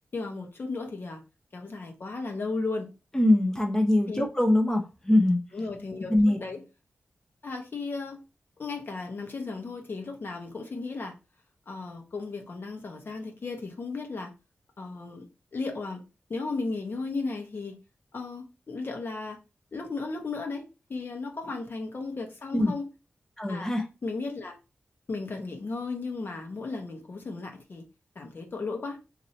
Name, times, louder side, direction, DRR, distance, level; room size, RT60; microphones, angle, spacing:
voice 1, 0.1-1.2 1.5-2.9 4.1-4.2 5.5-6.6 7.4-8.2 8.6-11.2 11.7-14.3 14.8-15.3 15.5-16.0 16.3-17.8 18.1-19.4 19.7-20.6 20.9-22.8 23.5-23.7 24.0-24.6 25.1-27.8 28.1-29.0, left 3 dB, 55° left, 0.9 m, -35 dB
voice 2, 3.1-5.4 6.1-6.4 22.5-22.7 23.4-23.8, left 1 dB, 10° left, 0.7 m, -23 dB
2.8 x 2.6 x 4.3 m
wide cardioid pair, 75°, 4 cm